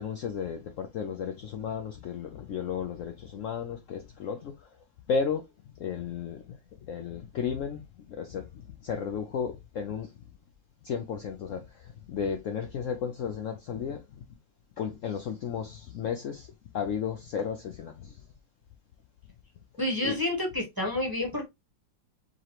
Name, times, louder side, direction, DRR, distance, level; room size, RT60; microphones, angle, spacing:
voice 1, 0.0-4.5 5.1-5.4 5.8-6.4 6.9-7.8 8.1-8.4 8.8-10.1 10.8-11.6 12.1-14.0 14.8-16.5 16.7-18.1 20.0-20.2, left 6 dB, 85° left, 0.6 m, -33 dB
voice 2, 19.8-21.5, left 1 dB, 15° right, 0.9 m, -29 dB
4.9 x 3.1 x 2.9 m
omnidirectional pair, 2.0 m